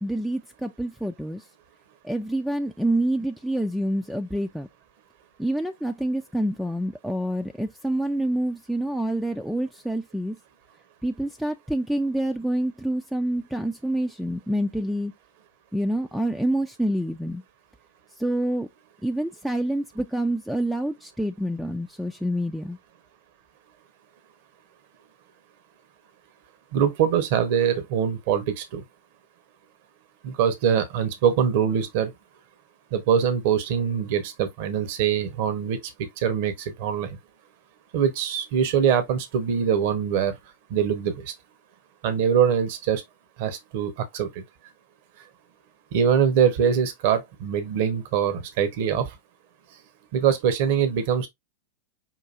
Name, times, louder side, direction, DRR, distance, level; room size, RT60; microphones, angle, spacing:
voice 1, 0.0-1.4 2.0-4.7 5.4-10.4 11.0-15.1 15.7-17.4 18.2-18.7 19.0-22.8, right 1 dB, ahead, 0.4 m, -27 dB
voice 2, 26.7-28.8 30.2-32.1 32.9-35.8 36.2-37.2 37.9-40.3 40.7-41.3 42.0-43.0 43.4-44.3 45.9-49.1 50.1-51.3, right 8 dB, 50° right, 0.9 m, -23 dB
5.7 x 2.6 x 2.5 m
figure-of-eight pair, 90°, 0 cm